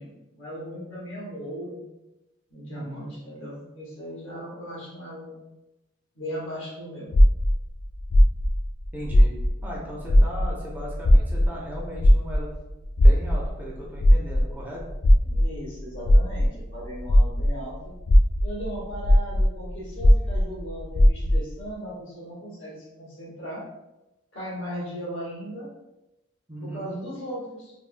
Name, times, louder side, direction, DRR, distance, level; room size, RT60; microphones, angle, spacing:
voice 1, 0.0-1.8 2.5-5.4 6.1-7.1 15.2-17.9 18.4-23.6 24.3-25.7 26.6-27.7, equal, 85° left, -6 dB, 1.2 m, -37 dB
voice 2, 2.7-3.1 8.9-9.3 9.6-12.5 13.0-14.8 26.5-26.9, equal, 10° right, -4 dB, 0.5 m, -37 dB
sound 1, 7.1-9.8 10.0-17.6 18.0-21.5, equal, 40° left, 0.3 m, -18 dB
3.3 x 2.1 x 2.5 m, 0.99 s
head